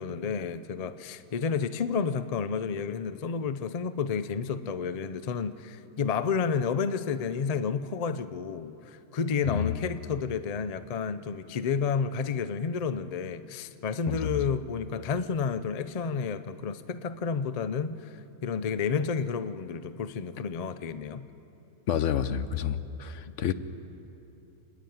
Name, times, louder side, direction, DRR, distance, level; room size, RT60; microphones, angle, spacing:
voice 1, 0.0-21.2, left 6 dB, 85° left, 0.3 m, -31 dB
voice 2, 9.4-9.8 14.1-14.4 21.9-23.5, left 9 dB, 60° left, 1.0 m, -29 dB
29.5 x 10.5 x 9.3 m
omnidirectional pair, 1.6 m